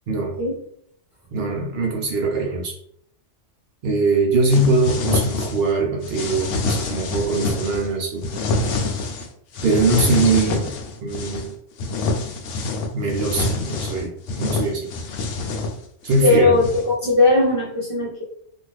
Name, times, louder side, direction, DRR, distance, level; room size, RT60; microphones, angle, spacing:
voice 1, 0.1-0.4 1.3-2.8 3.8-8.2 9.6-10.7 11.0-11.5 12.9-14.1 14.4-14.9 16.0-16.6, right 3 dB, 65° right, 0 dB, 0.8 m, -21 dB
sound 1, 4.5-5.7 6.0-7.9 8.2-9.3 9.5-11.5 11.8-16.9, left 3 dB, 90° left, 0.9 m, -26 dB
voice 2, 16.2-18.2, left 2 dB, 30° left, -5 dB, 0.7 m, -18 dB
2.6 x 2.4 x 3.1 m, 0.70 s
omnidirectional pair, 1.2 m